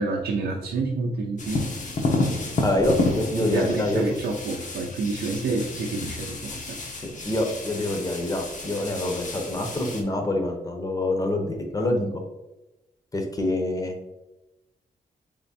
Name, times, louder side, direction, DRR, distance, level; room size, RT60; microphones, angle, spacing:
voice 1, 0.0-1.7 3.3-6.8, right 3 dB, 85° right, -1 dB, 0.5 m, -28 dB
sound 1, 1.4-10.0, left 2 dB, 55° left, 0.8 m, -30 dB
voice 2, 2.6-4.0 7.0-12.2 13.1-13.9, left 1 dB, 20° left, 3 dB, 0.8 m, -26 dB
3.6 x 3.2 x 4.1 m, 0.98 s
wide cardioid pair, 120°, 16 cm